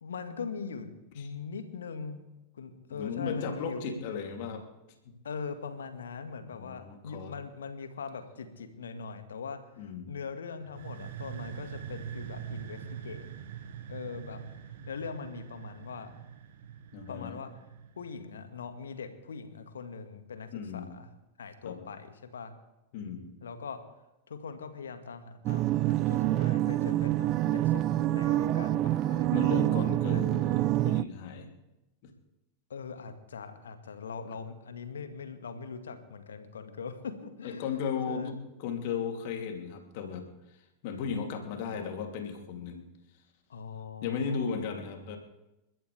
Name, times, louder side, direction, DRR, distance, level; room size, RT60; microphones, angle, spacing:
voice 1, 0.0-2.2 2.5-3.8 5.2-13.3 13.9-14.4 14.9-16.1 17.1-17.5 18.0-21.1 21.4-22.5 23.4-23.8 24.3-29.4 30.1-30.2 32.7-37.8 38.1-38.3 43.5-44.6, left 5 dB, 70° left, 8 dB, 1.9 m, -41 dB
voice 2, 2.9-4.6 5.0-5.1 6.5-7.3 9.8-10.1 16.9-17.4 20.5-20.9 21.6-21.8 22.9-23.3 29.3-31.5 32.0-32.1 37.4-42.8 44.0-45.2, left 6 dB, 50° left, 2 dB, 3.0 m, -36 dB
sound 1, 10.6-18.2, right 9 dB, 55° right, 1.6 m, -43 dB
sound 2, 25.4-31.0, right 14 dB, 35° right, 0.5 m, -26 dB
29.0 x 13.5 x 3.5 m, 0.95 s
figure-of-eight pair, 90°, 0 cm